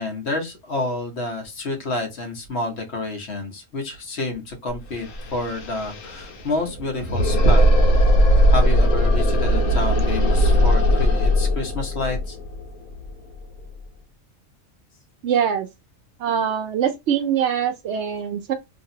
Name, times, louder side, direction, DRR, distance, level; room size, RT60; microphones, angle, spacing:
voice 1, 0.0-7.7 8.5-12.4, left 2 dB, 60° left, 1.2 m, -29 dB
sound 1, 4.7-4.8 5.0-13.8, equal, 85° left, 1.2 m, -19 dB
voice 2, 15.2-15.7 16.2-18.5, right 8 dB, 65° right, 0.8 m, -23 dB
3.0 x 2.6 x 2.7 m
omnidirectional pair, 1.3 m